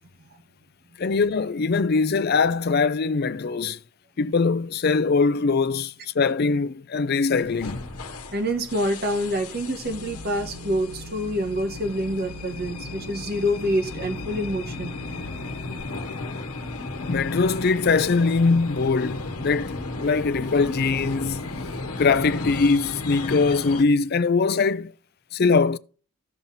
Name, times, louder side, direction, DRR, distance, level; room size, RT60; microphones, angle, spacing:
voice 1, 1.0-3.8 4.2-7.8 17.1-21.4 22.0-24.9 25.3-25.8, left 4 dB, 45° left, 0.4 m, -22 dB
sound 1, 7.3-23.8, left 3 dB, 85° left, 1.1 m, -35 dB
voice 2, 8.3-14.9, equal, 45° right, 1.3 m, -26 dB
sound 2, 9.8-15.8, left 1 dB, 75° right, 1.5 m, -41 dB
15.5 x 5.7 x 2.7 m
head